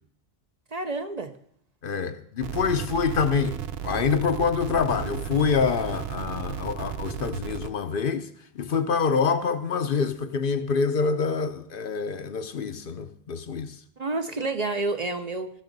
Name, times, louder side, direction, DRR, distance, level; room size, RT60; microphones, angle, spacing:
voice 1, 0.7-1.3 14.0-15.5, right 3 dB, 45° right, 0.8 m, -29 dB
voice 2, 1.8-8.3 8.5-13.7, left 5 dB, 60° left, 0.8 m, -26 dB
sound 1, 2.4-7.7, right 9 dB, 75° right, 0.9 m, -34 dB
16.0 x 6.3 x 5.2 m
omnidirectional pair, 1.1 m